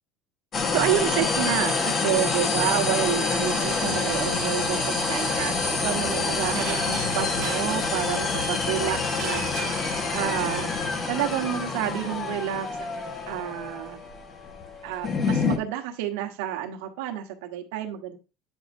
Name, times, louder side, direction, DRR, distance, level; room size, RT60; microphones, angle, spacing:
sound 1, 0.5-15.6, left 4 dB, 30° left, 1.3 m, -27 dB
voice 1, 0.7-10.8 11.1-12.7 13.3-14.0 14.8-18.2, right 11 dB, 90° right, 3 dB, 1.3 m, -29 dB
sound 2, 3.8-11.0, left 2 dB, 75° left, 1.9 m, -40 dB
sound 3, 6.5-8.5 9.1-10.6, right 10 dB, 60° right, 1.4 m, -38 dB
9.4 x 6.3 x 2.6 m, 0.32 s
cardioid pair, 150°, 0 cm